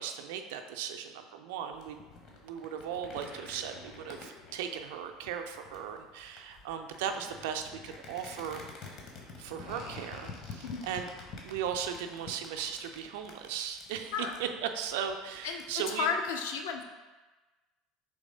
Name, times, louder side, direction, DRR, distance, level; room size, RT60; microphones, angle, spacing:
voice 1, 0.0-2.0 2.4-8.6 9.4-16.1, right 8 dB, 60° right, 6 dB, 0.3 m, -37 dB
sound 1, 1.7-16.0, left 3 dB, 45° left, 0.9 m, -48 dB
voice 2, 14.1-14.4 15.4-16.8, left 6 dB, 65° left, 4 dB, 0.4 m, -33 dB
3.7 x 3.1 x 3.8 m, 1.2 s
figure-of-eight pair, 65°, 0 cm